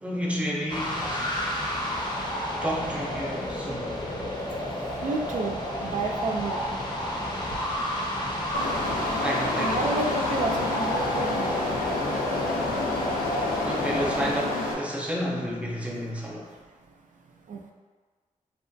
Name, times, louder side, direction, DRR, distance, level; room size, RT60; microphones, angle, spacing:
voice 1, 0.0-1.3 2.6-3.9 9.2-10.0 13.6-16.5, equal, 10° right, -3 dB, 0.6 m, -31 dB
sound 1, 0.7-14.3, equal, 30° left, 0.6 m, -31 dB
voice 2, 5.0-6.6 9.6-11.6 14.2-14.3 17.5-17.6, right 3 dB, 60° right, 3 dB, 0.4 m, -30 dB
sound 2, 8.5-14.7, left 2 dB, 80° left, 0.5 m, -29 dB
2.9 x 2.1 x 2.6 m, 1.4 s
cardioid pair, 55°, 14 cm